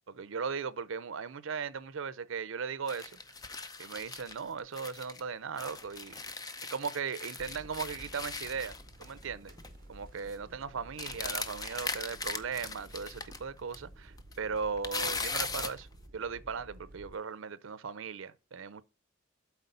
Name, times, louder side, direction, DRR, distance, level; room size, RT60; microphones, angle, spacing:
voice 1, 0.1-3.2 3.8-6.2 6.7-9.5 9.9-15.9 16.1-18.8, right 5 dB, 80° right, 0.6 m, -38 dB
sound 1, 2.9-5.2 5.6-9.2 9.5-9.7 10.0-10.3 11.0-13.4 13.7-13.8 14.2-15.8, left 4 dB, 20° left, 0.6 m, -39 dB
sound 2, 7.4-17.2, right 1 dB, 45° right, 1.0 m, -53 dB
8.1 x 4.4 x 5.3 m
head